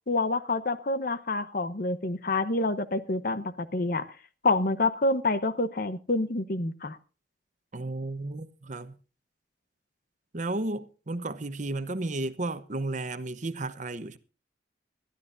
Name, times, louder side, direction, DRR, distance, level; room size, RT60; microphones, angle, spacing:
voice 1, 0.1-4.1 4.4-7.0, left 2 dB, 55° left, 0.9 m, -27 dB
voice 2, 7.7-8.9 10.3-14.2, right 2 dB, 45° right, 0.9 m, -33 dB
21.5 x 13.0 x 2.6 m
head